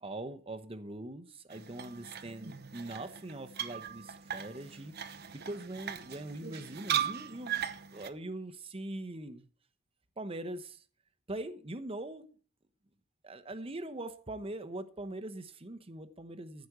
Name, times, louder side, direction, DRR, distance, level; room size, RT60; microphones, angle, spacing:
voice 1, 0.0-4.9 5.3-7.6 7.9-9.5 10.2-10.8 11.3-12.3 13.2-16.7, right 1 dB, 30° right, 0.9 m, -42 dB
sound 1, 1.5-8.1, right 9 dB, 55° right, 0.9 m, -38 dB
14.5 x 5.2 x 8.1 m
head